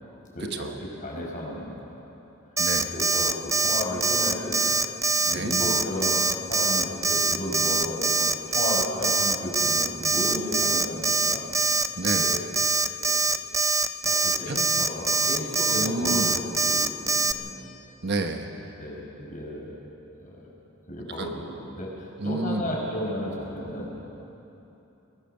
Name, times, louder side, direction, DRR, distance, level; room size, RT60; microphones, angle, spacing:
voice 1, 0.3-2.0 2.9-4.6 5.3-11.5 12.1-12.4 13.0-13.2 14.0-17.7 18.8-19.8 20.2-20.5 20.9-23.9, left 1 dB, 40° left, -3 dB, 5.2 m, -33 dB
Alarm, 2.6-17.3, right 3 dB, 15° right, 0.5 m, -23 dB
voice 2, 2.6-2.9 5.3-5.5 12.0-12.4 14.5-14.6 15.7-16.3 18.0-18.5 21.2-21.3 22.2-22.7, right 2 dB, 55° right, 5 dB, 1.2 m, -29 dB
22.0 x 18.0 x 6.6 m, 3.0 s
head